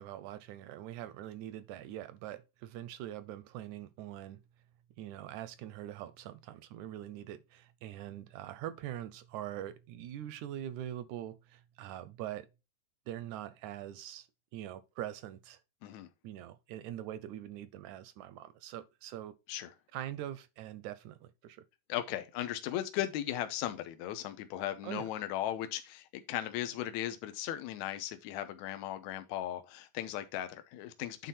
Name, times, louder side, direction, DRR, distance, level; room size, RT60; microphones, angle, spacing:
voice 1, 0.0-4.4 5.0-12.5 13.1-15.6 16.2-19.3 19.9-21.6 24.8-25.1, right 12 dB, 80° right, 1.9 m, -43 dB
voice 2, 21.9-31.3, left 12 dB, 75° left, 2.0 m, -37 dB
9.2 x 3.9 x 4.2 m
omnidirectional pair, 3.6 m